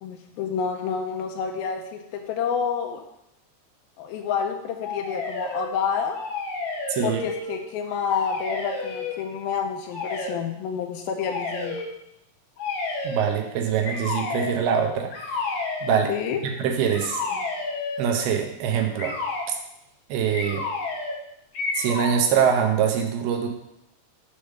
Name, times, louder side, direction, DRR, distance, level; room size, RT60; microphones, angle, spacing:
voice 1, 0.0-3.0 4.0-6.2 7.0-11.8 16.1-16.4, left 7 dB, 85° left, 3 dB, 2.1 m, -29 dB
sound 1, 4.8-5.7 6.1-7.6 7.9-9.2 9.9-10.4 11.2-11.9 12.6-13.3 13.8-14.6 15.1-16.1 16.9-18.1 19.0-19.5 20.3-21.2 21.5-22.2, left 3 dB, 60° left, 2.2 m, -30 dB
voice 2, 6.9-7.2 13.0-15.4 15.8-16.1 16.4-17.2 18.0-19.2 20.1-20.6 21.7-23.5, right 7 dB, 80° right, 4 dB, 2.4 m, -24 dB
7.2 x 3.3 x 6.3 m, 0.81 s
omnidirectional pair, 4.9 m